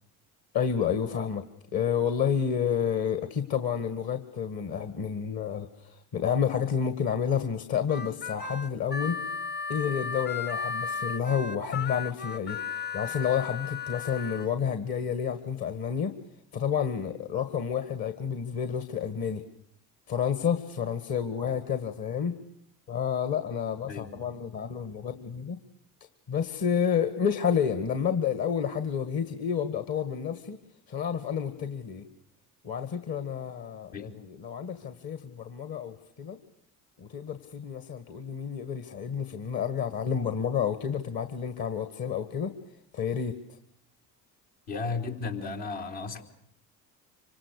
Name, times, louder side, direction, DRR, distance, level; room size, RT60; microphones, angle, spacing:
voice 1, 0.5-1.5 1.7-9.2 9.7-12.6 12.9-16.1 16.5-19.4 20.1-22.3 22.9-25.6 26.3-30.6 30.9-32.1 32.6-36.4 37.0-42.5 42.9-43.4, left 7 dB, 50° left, 9 dB, 1.9 m, -30 dB
Harmonica, 7.9-14.5, left 6 dB, 20° left, 0.9 m, -35 dB
voice 2, 23.9-24.3 33.9-34.2 44.7-46.2, left 4 dB, 70° left, 1 dB, 3.7 m, -34 dB
26.0 x 25.0 x 6.6 m, 0.71 s
hypercardioid pair, 55°, 47 cm